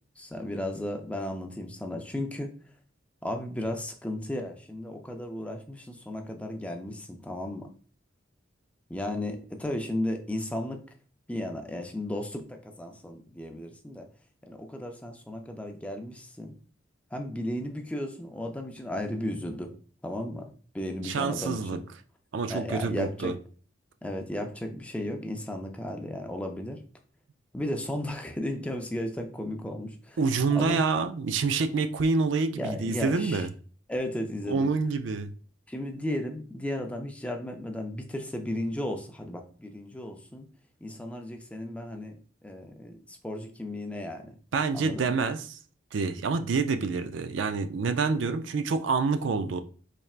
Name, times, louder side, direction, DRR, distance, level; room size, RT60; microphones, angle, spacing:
voice 1, 0.2-2.5 3.2-7.7 8.9-10.8 11.3-14.1 14.4-16.5 17.1-19.7 20.0-20.5 20.7-21.8 22.5-23.3 24.0-26.8 27.5-30.2 30.5-30.8 32.5-33.5 33.9-34.7 35.7-40.5 40.8-42.2 42.4-44.4 44.7-45.1, left 1 dB, 5° left, 0.5 m, -34 dB
voice 2, 21.0-21.8 22.3-23.3 30.2-33.5 34.5-35.3 44.5-45.6 45.9-49.6, right 4 dB, 70° right, 0.4 m, -27 dB
4.3 x 3.3 x 2.4 m
head